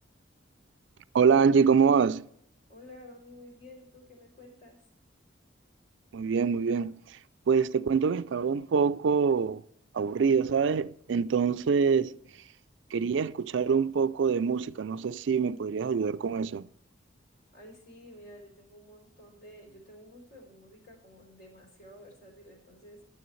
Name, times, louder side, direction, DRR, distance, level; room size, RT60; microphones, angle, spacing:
voice 1, 1.1-2.3 6.1-7.2 7.5-9.6 9.9-12.2 12.9-16.7, right 6 dB, 65° right, 0.4 m, -25 dB
voice 2, 2.7-4.8 17.5-23.0, left 1 dB, 55° left, 3.1 m, -51 dB
12.5 x 7.1 x 3.2 m
head